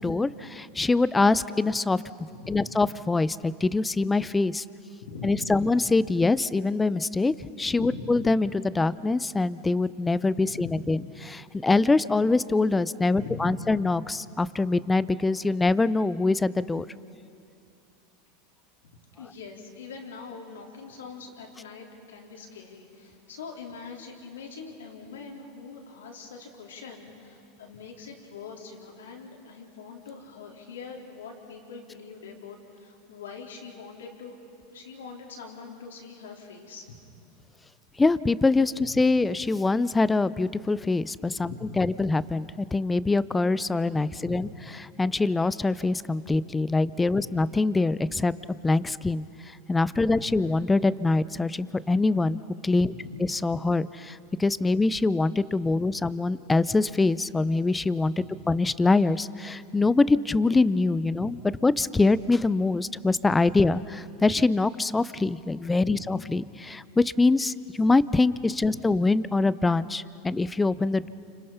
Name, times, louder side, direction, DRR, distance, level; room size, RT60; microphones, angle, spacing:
voice 1, 0.0-2.0 2.5-4.6 5.2-16.8 38.0-44.5 45.0-48.3 48.6-52.9 53.3-58.1 58.5-61.4 61.6-71.1, left 3 dB, 15° left, 17 dB, 0.6 m, -24 dB
voice 2, 2.3-2.7 5.0-5.5 7.8-8.2 10.5-10.8 13.1-13.6 19.2-34.4 34.7-37.0 38.8-39.0 41.4-41.9 44.1-44.6 47.1-47.4 50.0-50.4 52.8-53.1 55.7-55.9 58.2-58.5 61.1-61.4 65.8-66.2 68.6-68.8 71.0-71.1, left 4 dB, 90° left, 0 dB, 3.8 m, -43 dB
29.5 x 26.0 x 5.8 m, 2.5 s
hypercardioid pair, 105°, 0 cm